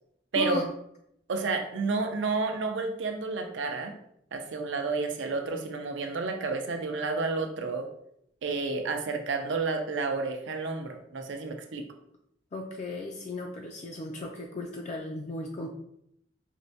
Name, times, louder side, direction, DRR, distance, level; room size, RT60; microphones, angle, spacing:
voice 1, 0.3-0.6 1.3-3.9 4.3-7.9 8.4-11.8, right 3 dB, 90° right, 5 dB, 0.5 m, -30 dB
voice 2, 12.5-15.7, left 2 dB, 40° left, 1 dB, 0.3 m, -35 dB
4.3 x 2.1 x 2.7 m, 0.74 s
head